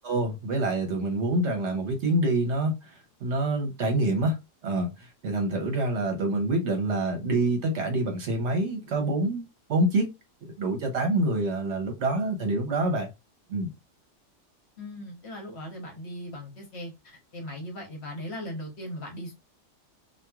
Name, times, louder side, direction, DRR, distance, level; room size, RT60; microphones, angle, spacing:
voice 1, 0.0-2.9 3.2-4.4 4.6-9.4 9.7-10.1 10.4-13.1 13.5-13.7, right 2 dB, 65° right, 1.0 m, -26 dB
voice 2, 14.8-19.3, left 1 dB, 55° left, 1.1 m, -38 dB
2.9 x 2.4 x 2.3 m
omnidirectional pair, 1.4 m